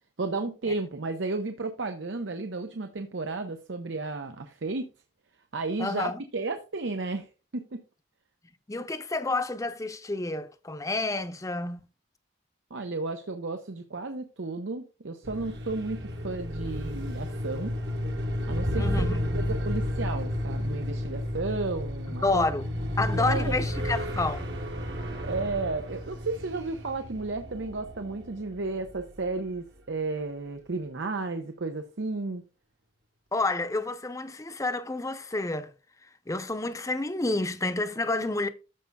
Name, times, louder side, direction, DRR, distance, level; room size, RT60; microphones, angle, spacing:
voice 1, 0.2-4.9 5.5-7.8 12.7-17.7 18.5-19.1 19.3-22.5 23.0-23.6 25.2-32.4, right 3 dB, 90° right, 0.8 m, -33 dB
voice 2, 5.8-6.2 8.7-11.8 18.8-19.2 22.2-22.7 23.0-24.5 33.3-35.7 36.3-38.5, left 2 dB, 15° left, 0.6 m, -29 dB
sound 1, 15.2-29.3, left 1 dB, 65° right, 1.4 m, -32 dB
14.0 x 5.2 x 2.3 m
head